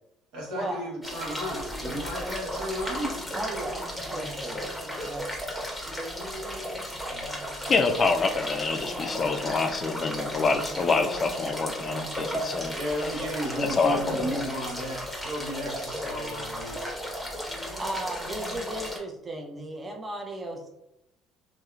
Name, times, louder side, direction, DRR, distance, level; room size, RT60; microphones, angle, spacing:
voice 1, 0.3-3.1 12.7-16.8, equal, 70° right, -3 dB, 1.1 m, -33 dB
sound 1, 1.0-19.0, equal, ahead, 0.8 m, -35 dB
voice 2, 3.3-4.8 5.0-5.3 17.8-20.7, right 1 dB, 30° right, 1 dB, 0.5 m, -35 dB
voice 3, 7.7-12.8 13.6-14.3, left 4 dB, 40° left, 7 dB, 0.3 m, -26 dB
2.7 x 2.0 x 2.3 m, 0.83 s
hypercardioid pair, 65°, 0 cm